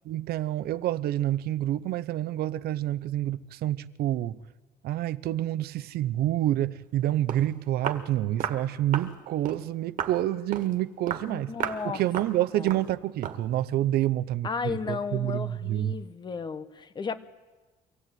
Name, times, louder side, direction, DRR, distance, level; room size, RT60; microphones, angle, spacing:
voice 1, 0.0-4.4 4.8-11.5 11.9-15.9, right 13 dB, 70° right, 0.7 m, -28 dB
Walk footsteps, 7.0-7.1 7.3-7.5 7.8-8.1 8.4-8.6 8.9-9.1 9.4-9.6 10.0-10.2 10.5-10.7 11.1-11.3 11.6-11.8 12.1-12.4 12.7-12.9 13.2-13.4, right 8 dB, 50° right, 1.8 m, -33 dB
voice 2, 11.3-12.0 12.5-12.7 14.4-17.2, left 5 dB, 25° left, 1.1 m, -34 dB
24.5 x 16.5 x 9.2 m
cardioid pair, 160°, 17 cm